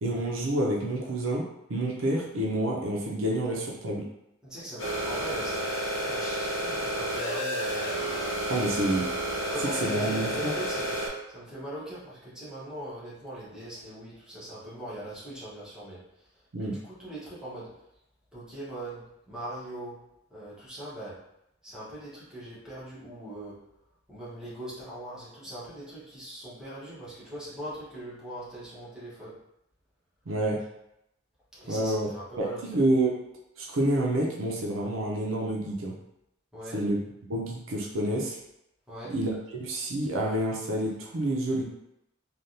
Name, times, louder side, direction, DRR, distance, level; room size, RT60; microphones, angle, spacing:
voice 1, 0.0-4.0 8.5-9.1 9.8-10.5 16.5-16.8 30.3-30.6 31.7-32.1 32.4-32.5 32.7-33.2 33.6-35.9 36.7-37.0 37.3-38.4 39.0-41.6, right 1 dB, 85° right, -1 dB, 0.6 m, -28 dB
voice 2, 4.4-8.0 8.7-8.9 9.5-16.3 16.6-17.8 18.3-21.2 21.6-23.7 24.1-29.4 31.5-32.6 36.5-36.8 38.9-39.2, right 1 dB, 5° right, -9 dB, 1.1 m, -41 dB
sound 1, 4.8-11.1, right 1 dB, 70° left, 0.8 m, -30 dB
3.3 x 2.3 x 2.7 m, 0.82 s
head